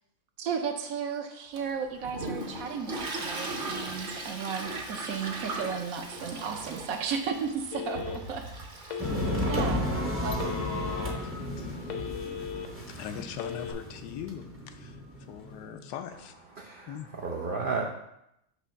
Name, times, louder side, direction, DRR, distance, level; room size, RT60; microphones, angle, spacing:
voice 1, 0.4-8.4 9.5-9.9 10.2-10.6, right 6 dB, 65° right, 5 dB, 1.0 m, -34 dB
Toilet flush, 1.6-11.8, right 2 dB, 45° right, 0.8 m, -39 dB
Telephone, 7.7-8.4 8.9-9.7 10.4-11.2 11.6-12.7 13.3-13.7, left 8 dB, 60° left, 0.9 m, -37 dB
sound 1, 9.0-15.9, equal, 15° right, 0.4 m, -33 dB
voice 2, 10.7-11.8 12.9-15.0 15.3-16.4 16.9-17.1, left 9 dB, 85° left, 9 dB, 1.2 m, -41 dB
voice 3, 16.6-17.9, right 4 dB, 90° right, -1 dB, 0.4 m, -33 dB
6.0 x 3.0 x 5.6 m, 0.81 s
omnidirectional pair, 1.7 m